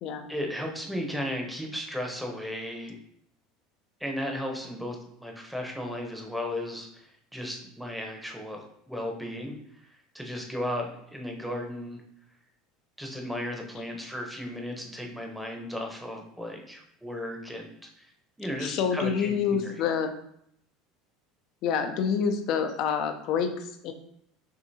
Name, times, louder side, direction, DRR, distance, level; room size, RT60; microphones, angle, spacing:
voice 1, 0.3-3.0 4.0-9.5 9.8-12.0 13.0-18.1 18.4-19.8, left 1 dB, ahead, 1 dB, 0.8 m, -35 dB
voice 2, 18.6-20.1 21.6-23.9, left 7 dB, 55° left, 7 dB, 0.6 m, -27 dB
6.2 x 2.7 x 2.8 m, 0.72 s
supercardioid pair, 120°, 0 cm